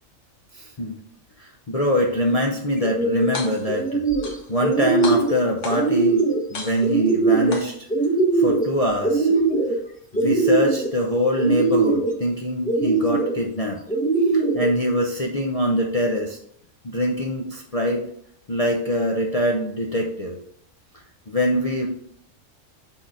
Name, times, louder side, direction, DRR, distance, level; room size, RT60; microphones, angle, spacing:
voice 1, 0.5-1.0 1.4-4.0 4.3-6.2 6.5-7.9 8.3-9.3 10.1-13.8 14.3-16.4 16.8-18.0 18.5-20.4 21.3-21.9, equal, 35° left, -1 dB, 0.6 m, -23 dB
sound 1, 2.8-3.3 3.7-4.3 4.6-5.4 5.7-6.4 6.8-7.6 7.9-8.7 9.0-9.8 10.1-10.9 11.4-12.1 12.6-13.3 13.9-14.7, right 3 dB, 5° left, 0.9 m, -21 dB
sound 2, 3.2-3.8 4.2-4.8 5.0-6.0 6.5-7.1 7.5-8.1, left 3 dB, 65° left, 1.4 m, -34 dB
6.4 x 3.9 x 4.8 m, 0.68 s
omnidirectional pair, 1.4 m